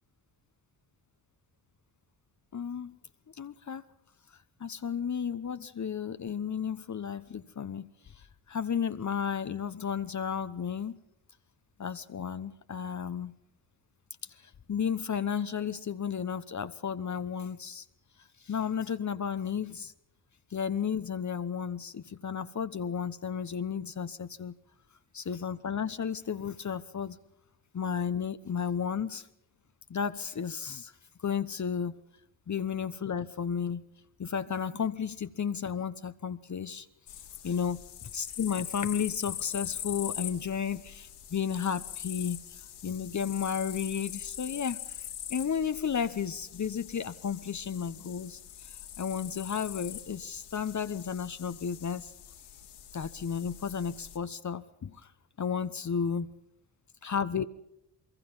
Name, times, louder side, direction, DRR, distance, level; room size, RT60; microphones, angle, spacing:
voice 1, 2.5-3.0 3.4-3.8 4.6-7.9 8.5-11.0 11.8-13.3 14.4-17.8 18.4-19.9 20.5-24.5 25.1-27.2 27.7-29.3 29.9-30.9 31.2-32.0 32.5-33.8 34.2-36.9 37.4-37.8 38.1-42.4 42.8-45.0 45.3-52.1 52.9-55.0 55.4-56.3 57.0-57.4, left 7 dB, 40° left, 11 dB, 1.1 m, -33 dB
sound 1, 37.1-54.2, left 10 dB, 85° left, 3.4 m, -43 dB
25.0 x 22.5 x 5.7 m, 0.80 s
hypercardioid pair, 50°, 46 cm